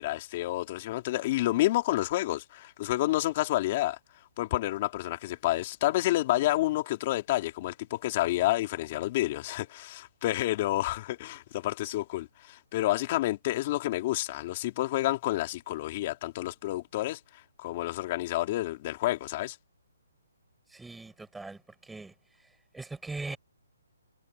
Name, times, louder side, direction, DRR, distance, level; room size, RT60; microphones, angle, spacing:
voice 1, 0.0-4.0 4.4-19.6, left 16 dB, 30° left, 2.9 m, -29 dB
voice 2, 20.7-22.1 22.7-23.4, right 3 dB, 5° right, 6.0 m, -40 dB
hypercardioid pair, 160°, 0 cm